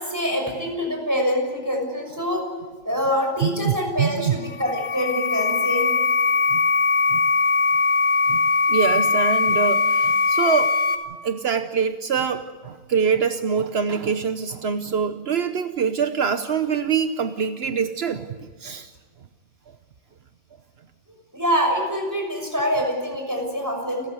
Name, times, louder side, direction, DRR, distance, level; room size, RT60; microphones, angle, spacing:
voice 1, 0.0-2.4 2.8-5.9 21.3-24.1, equal, 15° right, 2 dB, 6.2 m, -25 dB
voice 2, 3.4-4.3 6.5-6.6 7.1-7.2 8.3-10.8 11.2-18.3 18.6-18.9, right 6 dB, 75° right, 9 dB, 1.2 m, -24 dB
sound 1, 4.5-11.0, left 4 dB, 85° left, 3.1 m, -20 dB
29.5 x 14.5 x 9.4 m, 1.5 s
omnidirectional pair, 1.1 m